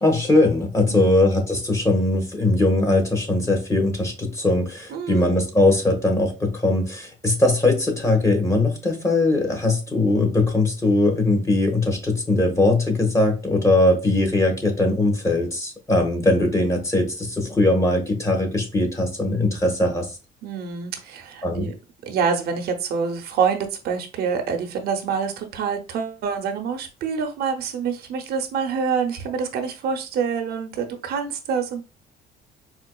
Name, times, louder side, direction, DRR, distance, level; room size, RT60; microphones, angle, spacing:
voice 1, 0.0-20.1 21.4-21.7, left 2 dB, 20° left, 1 dB, 1.3 m, -20 dB
voice 2, 0.8-1.3 4.9-5.3 20.4-21.7 22.0-31.8, right 6 dB, 70° right, 5 dB, 0.7 m, -26 dB
4.4 x 2.4 x 2.3 m, 0.30 s
cardioid pair, 110°, 17 cm